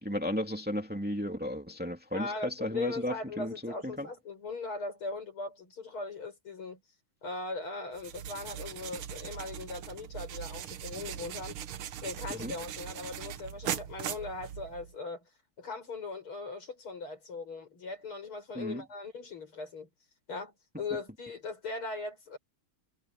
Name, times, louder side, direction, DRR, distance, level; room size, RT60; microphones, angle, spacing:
voice 1, 0.0-4.1 12.3-12.6 18.5-18.8, left 1 dB, 5° right, 2.6 m, -34 dB
voice 2, 2.1-6.8 7.2-11.6 12.0-15.3 15.6-19.9 20.3-22.4, left 3 dB, 85° left, 7.5 m, -39 dB
sound 1, 7.9-14.9, right 10 dB, 90° right, 1.9 m, -40 dB
omnidirectional pair, 2.3 m